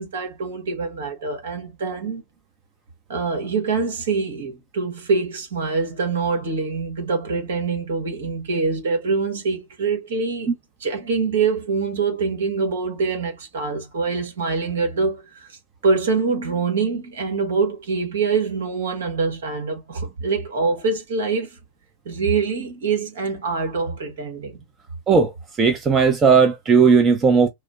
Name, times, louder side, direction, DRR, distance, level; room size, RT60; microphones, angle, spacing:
voice 1, 0.0-2.2 3.1-10.5 10.8-15.5 15.8-21.6 22.0-24.6, right 4 dB, 65° right, 1.5 m, -24 dB
voice 2, 25.6-27.5, right 5 dB, 25° right, 0.7 m, -16 dB
4.7 x 2.1 x 2.4 m
figure-of-eight pair, 95°, 0 cm